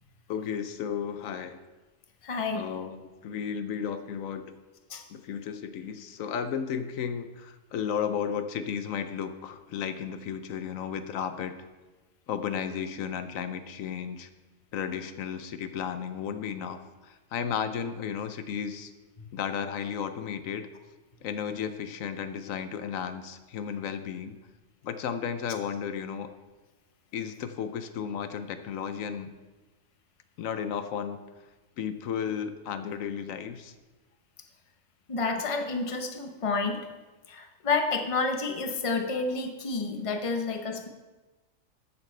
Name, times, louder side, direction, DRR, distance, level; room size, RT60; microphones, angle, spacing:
voice 1, 0.3-1.6 2.5-4.5 5.1-11.5 12.3-14.3 14.7-18.9 19.3-20.7 21.2-24.4 24.8-26.3 27.1-29.3 30.4-31.2 31.8-33.7, left 7 dB, 80° left, 10 dB, 1.1 m, -34 dB
voice 2, 2.2-2.6 4.9-5.0 35.1-36.9 37.3-40.9, left 4 dB, 30° left, 4 dB, 0.9 m, -29 dB
13.0 x 8.5 x 3.3 m, 1.2 s
omnidirectional pair, 1.4 m